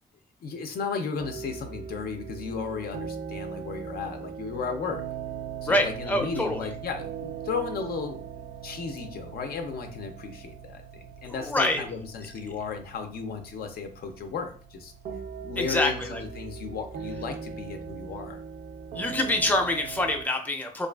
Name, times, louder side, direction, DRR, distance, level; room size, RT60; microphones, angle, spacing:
voice 1, 0.4-5.0 5.6-14.9 15.4-18.4, left 5 dB, 80° left, 5 dB, 0.4 m, -34 dB
sound 1, 1.2-20.2, right 7 dB, 70° right, 0.4 m, -40 dB
voice 2, 5.7-6.7 11.2-11.8 15.6-16.2 18.9-20.9, left 1 dB, 10° left, 3 dB, 0.4 m, -26 dB
2.4 x 2.4 x 2.2 m, 0.41 s
cardioid pair, 90°, 16 cm